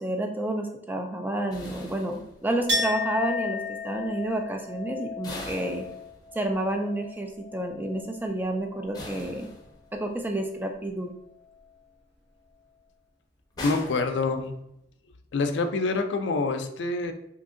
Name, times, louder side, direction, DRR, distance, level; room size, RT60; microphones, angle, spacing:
voice 1, 0.0-5.8 6.3-9.5 10.0-11.1, right 1 dB, 10° right, 3 dB, 0.3 m, -30 dB
sound 1, 1.5-2.8 5.2-6.6 8.9-10.1 13.6-14.9, left 1 dB, 20° left, 0.6 m, -41 dB
Chink clink, 2.7-8.2 8.5-9.4, left 3 dB, 70° right, 1.4 m, -34 dB
voice 2, 13.6-14.5 15.3-17.1, left 3 dB, 70° left, 7 dB, 0.4 m, -26 dB
2.9 x 2.5 x 3.6 m, 0.81 s
head